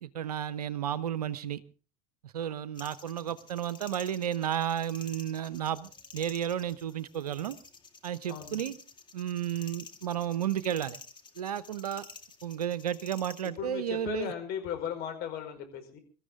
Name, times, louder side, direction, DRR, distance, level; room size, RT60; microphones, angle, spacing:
voice 1, 0.0-1.6 2.2-7.6 8.0-8.7 9.1-11.0 11.4-12.1 12.4-14.3, right 10 dB, 75° right, 17 dB, 0.9 m, -32 dB
sound 1, 2.7-13.5, left 5 dB, 25° left, 2.4 m, -50 dB
voice 2, 8.3-8.7 13.4-16.0, left 8 dB, 50° left, 5 dB, 5.0 m, -37 dB
24.5 x 13.5 x 3.7 m, 0.37 s
figure-of-eight pair, 75°, 20 cm